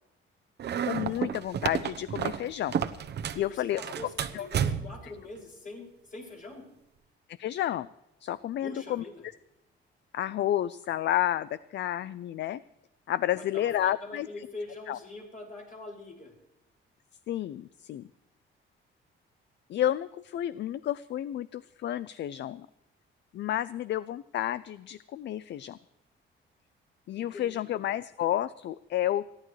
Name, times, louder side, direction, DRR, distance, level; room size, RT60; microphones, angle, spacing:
sound 1, 0.6-3.5 3.8-5.1, right 8 dB, 55° right, 0.9 m, -31 dB
voice 1, 0.9-2.8 3.3-3.8 4.3-4.5 7.4-7.9 8.2-9.0 10.1-12.6 13.1-14.3 14.9-15.0 17.3-18.1 19.7-22.7 23.3-25.8 27.1-29.3, left 12 dB, 60° left, 17 dB, 0.4 m, -31 dB
voice 2, 3.3-6.6 8.6-9.2 13.3-16.3 27.1-27.8, left 2 dB, 40° left, -2 dB, 5.9 m, -44 dB
28.5 x 11.5 x 3.2 m, 0.92 s
cardioid pair, 135°, 21 cm